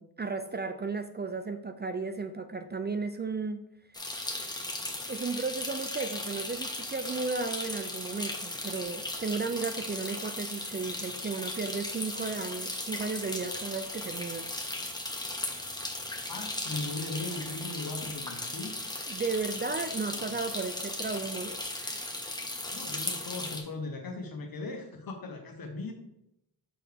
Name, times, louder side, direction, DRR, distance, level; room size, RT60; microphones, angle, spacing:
voice 1, 0.0-3.6 4.1-4.3 5.1-14.5 19.1-22.1, right 4 dB, 25° right, 8 dB, 0.4 m, -34 dB
sound 1, 3.9-23.6, left 1 dB, 10° left, 1.2 m, -37 dB
voice 2, 16.3-18.7 20.1-20.3 22.7-25.9, left 3 dB, 55° left, 3 dB, 1.4 m, -38 dB
6.3 x 4.5 x 3.5 m, 0.84 s
cardioid pair, 60°, 41 cm